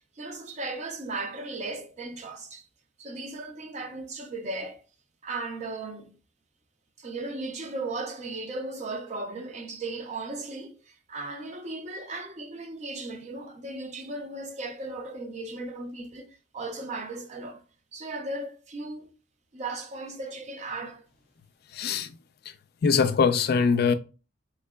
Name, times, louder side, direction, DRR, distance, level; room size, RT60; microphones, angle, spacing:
voice 1, 0.2-2.7 3.0-4.8 5.2-6.1 7.0-17.6 17.9-19.1 19.5-21.0, right 2 dB, 40° right, 0.5 m, -36 dB
voice 2, 21.7-22.1 22.5-22.6 22.8-23.9, left 5 dB, 55° left, 0.3 m, -22 dB
3.6 x 3.1 x 2.2 m
head